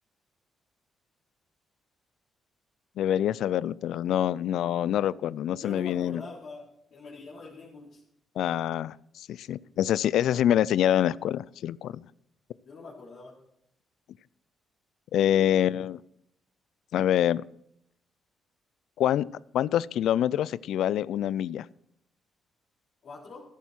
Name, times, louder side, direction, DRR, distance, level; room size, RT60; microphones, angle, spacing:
voice 1, 3.0-6.2 8.4-12.0 15.1-16.0 16.9-17.4 19.0-19.3 19.5-21.7, left 11 dB, 80° left, 21 dB, 0.4 m, -26 dB
voice 2, 5.3-6.6 6.9-8.0 10.2-10.4 12.6-13.3 23.0-23.4, left 3 dB, 60° left, -8 dB, 4.2 m, -44 dB
14.0 x 11.0 x 4.5 m, 0.74 s
cardioid pair, 85°, 0 cm